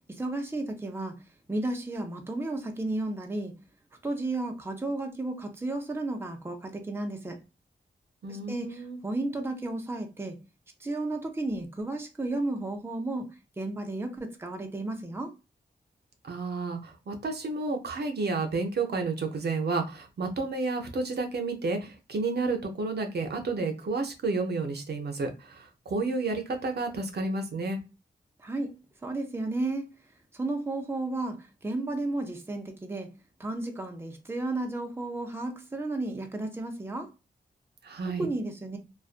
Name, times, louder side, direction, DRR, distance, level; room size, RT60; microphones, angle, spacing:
voice 1, 0.1-1.1 1.5-3.5 4.0-7.4 8.3-10.4 10.8-15.3 28.4-28.8 29.0-29.9 30.3-33.1 33.4-37.1 38.1-38.8, right 2 dB, 10° right, 0.6 m, -33 dB
voice 2, 8.2-9.0 16.2-27.8 37.8-38.3, right 3 dB, 60° right, 0.6 m, -31 dB
2.5 x 2.2 x 2.4 m
cardioid pair, 70°, 19 cm